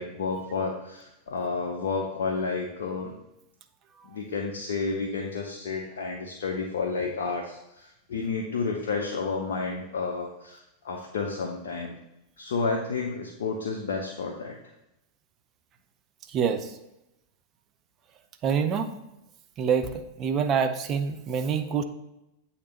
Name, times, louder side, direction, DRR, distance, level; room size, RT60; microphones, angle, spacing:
voice 1, 0.0-3.1 4.0-12.0 12.4-14.6, left 4 dB, 60° left, 2 dB, 0.6 m, -31 dB
voice 2, 16.3-16.7 18.4-18.9 19.6-19.9 20.2-21.8, right 7 dB, 30° right, 7 dB, 0.6 m, -25 dB
8.3 x 2.9 x 4.1 m, 0.89 s
figure-of-eight pair, 90°, 0 cm